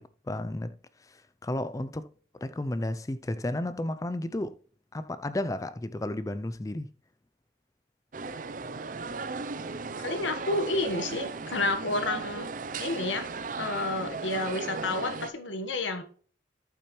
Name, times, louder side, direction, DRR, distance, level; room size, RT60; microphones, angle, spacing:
voice 1, 0.0-2.0 2.4-4.6 4.9-6.9, left 1 dB, 20° left, 0.4 m, -33 dB
sound 1, 8.1-15.3, right 4 dB, 45° right, 0.5 m, -36 dB
voice 2, 10.0-12.5 12.8-13.2 13.6-16.0, left 2 dB, 85° left, 1.3 m, -30 dB
8.6 x 5.8 x 3.1 m
head